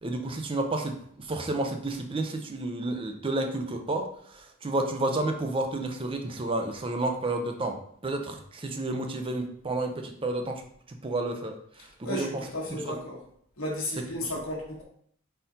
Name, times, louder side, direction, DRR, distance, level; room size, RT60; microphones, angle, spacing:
voice 1, 0.0-7.8 8.0-10.6 10.9-13.0 14.0-14.3, right 2 dB, 25° right, 5 dB, 0.5 m, -31 dB
voice 2, 12.0-13.2 13.6-14.8, left 1 dB, 75° left, -2 dB, 1.3 m, -34 dB
4.2 x 2.7 x 3.8 m, 0.65 s
head